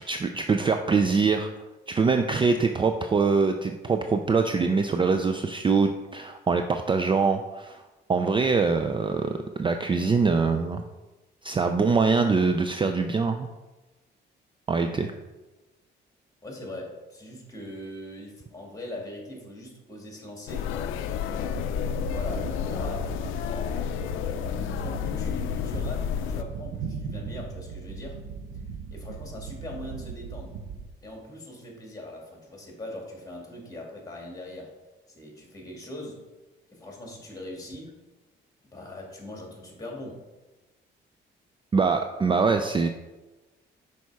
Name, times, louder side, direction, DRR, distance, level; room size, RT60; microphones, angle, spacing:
voice 1, 0.1-1.5 1.9-7.8 8.1-10.8 11.4-13.5 14.7-15.1 41.7-42.9, right 4 dB, 25° right, 6 dB, 0.4 m, -23 dB
voice 2, 16.4-20.7 21.2-21.6 22.1-23.9 24.6-28.2 28.9-30.6 31.0-34.7 35.1-36.2 36.7-37.9 38.6-40.2, left 1 dB, 20° left, -1 dB, 2.2 m, -41 dB
sound 1, 20.5-26.4, left 9 dB, 90° left, 0.5 m, -30 dB
sound 2, 21.4-30.8, right 5 dB, 80° right, 0.8 m, -38 dB
6.3 x 4.2 x 4.7 m, 1.1 s
cardioid pair, 90°, 20 cm